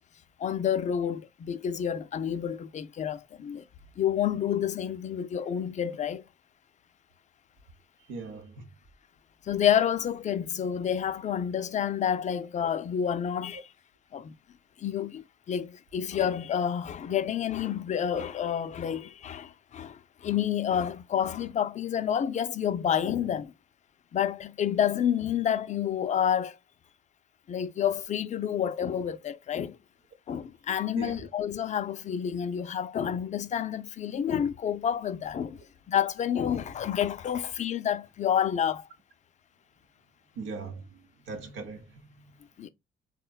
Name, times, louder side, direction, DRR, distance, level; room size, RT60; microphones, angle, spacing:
voice 1, 0.4-3.6 4.0-6.2 9.4-13.7 14.1-14.3 14.8-23.5 24.1-26.6 27.5-29.8 30.3-35.6 35.9-38.9 42.6-42.7, left 9 dB, 40° left, 0.4 m, -29 dB
voice 2, 8.1-8.7 30.9-31.3 40.4-40.9 41.3-42.0, right 4 dB, 80° right, 0.7 m, -39 dB
3.7 x 2.1 x 2.3 m
cardioid pair, 90°, 20 cm